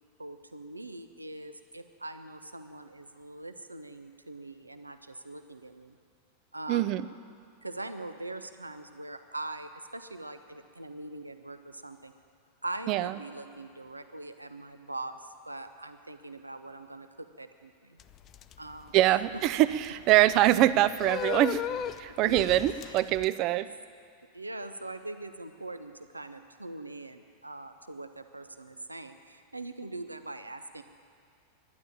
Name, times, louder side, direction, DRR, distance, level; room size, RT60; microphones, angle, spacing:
voice 1, 0.2-6.0 6.5-6.9 7.6-12.1 12.6-18.0 18.6-18.9 22.3-22.9 24.3-30.8, right 2 dB, 85° right, 9 dB, 0.7 m, -42 dB
voice 2, 6.7-7.1 12.9-13.1 18.9-21.6 22.0-23.7, right 14 dB, 40° right, 14 dB, 0.5 m, -24 dB
sound 1, 18.0-23.2, left 8 dB, 30° left, 0.5 m, -37 dB
11.5 x 10.5 x 8.8 m, 2.2 s
figure-of-eight pair, 90°, 0 cm